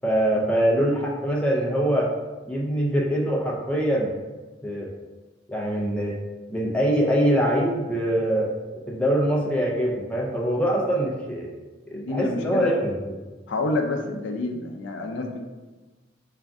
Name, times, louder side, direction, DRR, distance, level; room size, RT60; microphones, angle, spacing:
voice 1, 0.0-2.1 2.5-4.1 4.6-4.9 5.5-6.2 6.5-8.5 8.9-11.5 11.9-13.1, equal, 5° left, -3 dB, 0.4 m, -23 dB
voice 2, 11.9-12.7 13.5-15.4, left 2 dB, 70° left, 3 dB, 0.4 m, -28 dB
3.4 x 2.5 x 3.5 m, 1.2 s
head